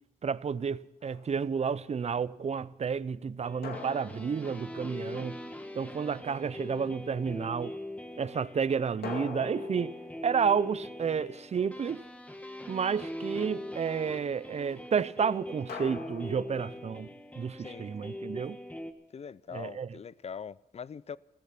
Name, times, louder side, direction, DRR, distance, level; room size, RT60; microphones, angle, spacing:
voice 1, 0.2-5.4 5.7-7.7 8.2-9.9 10.2-12.0 12.7-17.1 17.4-18.6 19.5-19.9, right 6 dB, 45° right, 0.6 m, -31 dB
sound 1, 1.0-1.6 3.6-5.5 9.0-11.6 15.7-17.3, left 5 dB, 80° left, 2.3 m, -44 dB
sound 2, 3.4-18.9, left 1 dB, 10° left, 1.6 m, -42 dB
voice 2, 17.6-17.9 19.1-21.2, left 7 dB, 40° left, 0.5 m, -42 dB
15.5 x 15.0 x 5.8 m
wide cardioid pair, 110°, 16 cm